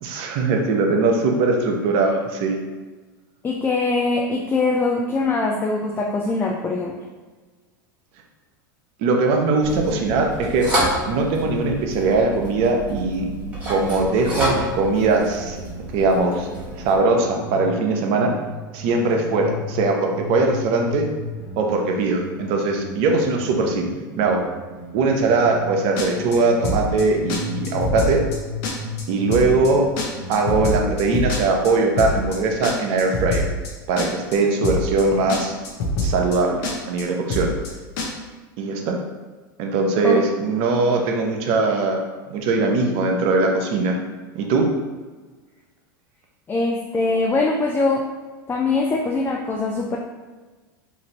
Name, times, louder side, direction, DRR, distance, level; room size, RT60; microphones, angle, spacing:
voice 1, 0.0-2.6 9.0-10.7 11.1-13.3 13.7-15.6 15.9-16.5 16.8-18.3 18.7-21.1 21.6-24.4 24.9-28.2 29.1-29.9 30.3-33.5 33.9-35.5 36.0-37.5 38.6-39.0 39.6-42.0 42.3-44.0 44.3-44.7, right 3 dB, 55° right, 2 dB, 0.6 m, -20 dB
voice 2, 3.4-7.0 40.0-40.2 46.5-48.1 48.5-50.0, left 3 dB, 20° left, 0 dB, 0.3 m, -22 dB
sound 1, 9.6-17.0, right 1 dB, 15° right, 1.4 m, -29 dB
sound 2, 14.1-17.8 18.1-19.8 20.1-25.8 26.1-27.8 28.1-31.0, left 1 dB, 80° left, 1.2 m, -35 dB
sound 3, 26.0-26.4 26.6-27.0 27.3-27.4 27.6-28.4 28.6-29.0 29.3-29.7 30.0-31.7 32.0-32.4 32.6-33.7 34.0-34.4 34.6-35.0 35.3-35.4 35.6-36.4 36.6-37.0 37.3-37.7 38.0-38.1, left 1 dB, 60° left, 0.7 m, -24 dB
3.0 x 2.5 x 2.8 m, 1.3 s
hypercardioid pair, 100°, 11 cm